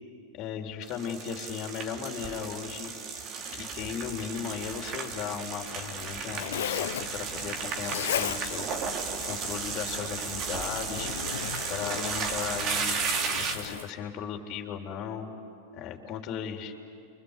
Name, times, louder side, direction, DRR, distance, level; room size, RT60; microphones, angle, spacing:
voice 1, 0.3-2.9 3.5-11.1 11.7-13.0 13.3-15.3 15.7-16.7, left 8 dB, 45° left, 3 dB, 3.6 m, -36 dB
sound 1, 0.8-13.8, right 5 dB, 40° right, 3.1 m, -34 dB
Zipper (clothing), 5.6-13.8, left 11 dB, 75° left, 0.8 m, -37 dB
29.5 x 24.5 x 8.3 m, 2.5 s
hypercardioid pair, 105°, 0 cm